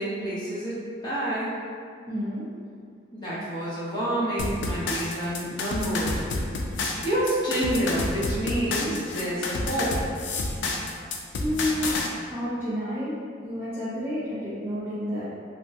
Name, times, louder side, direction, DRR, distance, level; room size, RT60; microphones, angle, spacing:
voice 1, 0.0-1.5 3.1-6.1 7.0-9.9, right 1 dB, 20° left, -10 dB, 0.9 m, -28 dB
voice 2, 2.1-2.4 11.4-11.9 12.3-13.1 13.4-15.2, equal, 10° right, -12 dB, 0.5 m, -29 dB
sound 1, 4.4-12.1, left 3 dB, 75° left, 0.3 m, -29 dB
3.3 x 2.1 x 2.7 m, 2.2 s
head